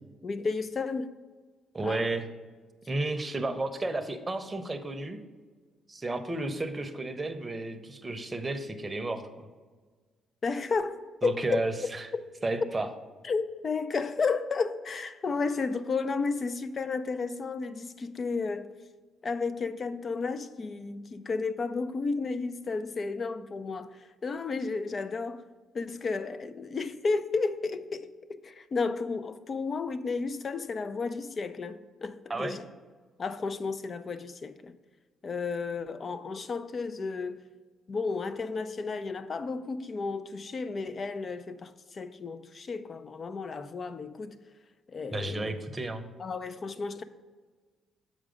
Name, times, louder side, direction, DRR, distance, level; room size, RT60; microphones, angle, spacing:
voice 1, 0.2-1.1 1.8-2.1 10.4-11.6 12.1-12.3 12.6-12.7 13.2-18.7 19.2-25.4 25.7-32.6 33.2-34.7 35.2-37.5 37.9-44.4 44.9-45.5 46.2-47.0, left 4 dB, 40° left, 0.5 m, -32 dB
voice 2, 1.7-2.3 2.9-5.2 5.9-9.5 11.2-12.1 12.4-12.9 32.3-32.6 45.1-46.1, right 2 dB, 20° right, 0.8 m, -32 dB
7.4 x 5.0 x 5.0 m
cardioid pair, 90°, 0 cm